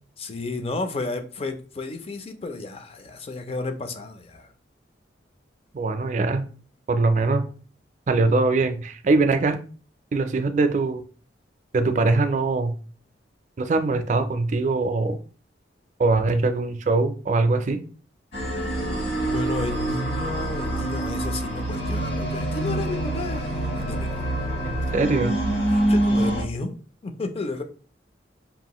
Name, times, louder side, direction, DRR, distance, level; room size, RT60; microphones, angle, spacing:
voice 1, 0.2-4.5 19.3-24.2 25.7-26.8 27.0-27.6, left 3 dB, 30° left, 7 dB, 0.4 m, -32 dB
voice 2, 5.7-6.4 6.9-7.4 8.1-9.6 10.1-11.0 11.7-12.8 13.6-15.2 16.0-17.8 24.6-25.4, right 3 dB, 40° right, 8 dB, 0.4 m, -22 dB
sound 1, 18.3-26.4, right 1 dB, 60° left, 1.4 m, -26 dB
5.4 x 2.5 x 2.9 m, 0.40 s
head